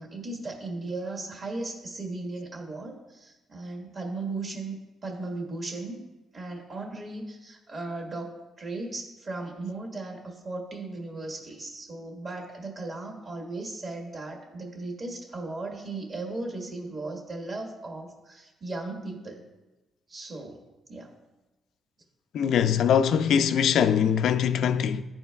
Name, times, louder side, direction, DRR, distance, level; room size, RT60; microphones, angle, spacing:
voice 1, 0.0-4.8 5.0-6.0 6.3-19.4 20.1-20.6 20.9-21.1, right 2 dB, 40° right, 1.6 m, -36 dB
voice 2, 22.3-25.0, left 8 dB, 75° left, 0.3 m, -22 dB
12.0 x 4.4 x 2.3 m
cardioid pair, 90°, 0 cm